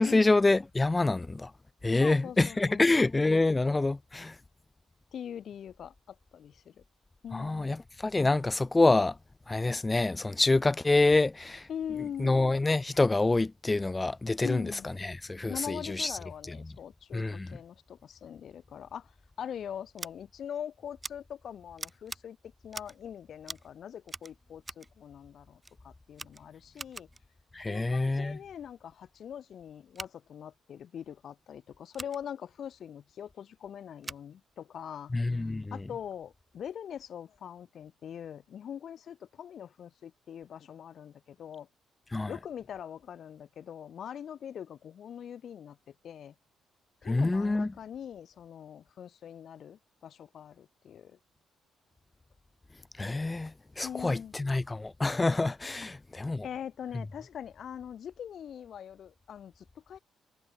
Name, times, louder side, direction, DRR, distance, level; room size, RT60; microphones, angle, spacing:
voice 1, 0.0-1.5 1.8-4.4 7.3-9.2 9.5-11.7 12.2-16.2 16.5-16.6 17.1-17.6 27.5-28.4 35.1-35.8 42.1-42.3 47.1-47.7 53.0-56.5, left 2 dB, 20° left, 2.0 m, -27 dB
voice 2, 1.9-2.8 5.1-6.8 7.2-7.8 11.7-12.4 14.4-14.9 15.5-19.1 19.4-27.1 27.7-41.7 42.3-46.3 47.0-51.2 53.8-54.4 56.4-60.0, left 9 dB, 60° left, 5.8 m, -42 dB
Scissors, 20.0-20.1 21.0-21.1 21.8-22.2 22.7-23.0 23.4-23.7 24.1-24.9 25.6-25.8 26.1-27.2 29.9-30.1 31.9-32.2 34.0-34.3, right 2 dB, 20° right, 3.5 m, -43 dB
cardioid pair, 90°, 0 cm